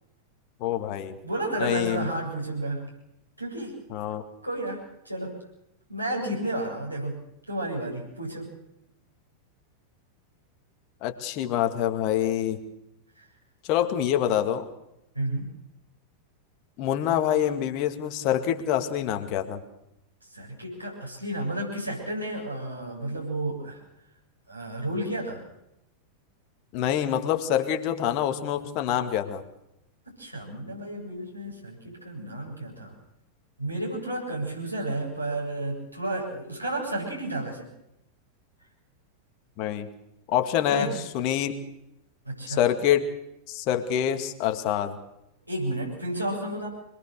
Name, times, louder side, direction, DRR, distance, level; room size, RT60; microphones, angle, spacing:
voice 1, 0.6-1.2 1.6-2.1 3.9-4.2 11.0-12.6 13.7-14.7 16.8-19.6 26.7-29.4 39.6-39.9 40.3-41.5 42.5-43.1 43.5-45.0, left 10 dB, 40° left, 6 dB, 2.1 m, -26 dB
voice 2, 1.2-2.9 3.4-3.8 4.4-5.3 5.9-8.5 13.2-13.3 15.1-15.5 20.3-23.8 24.5-25.4 30.2-32.9 33.6-37.7 40.7-40.9 42.2-42.6 45.5-46.7, right 1 dB, 90° right, -3 dB, 7.4 m, -32 dB
25.5 x 21.0 x 6.7 m, 0.86 s
figure-of-eight pair, 90°, 0 cm